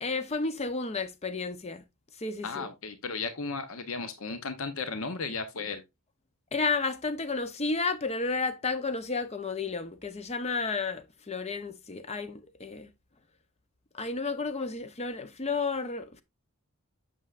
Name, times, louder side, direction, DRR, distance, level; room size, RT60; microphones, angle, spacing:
voice 1, 0.0-1.8 2.2-2.7 6.5-12.9 13.9-16.2, left 4 dB, 30° left, 0.6 m, -32 dB
voice 2, 2.4-5.8, left 4 dB, 65° left, 0.7 m, -35 dB
7.9 x 6.3 x 2.4 m
head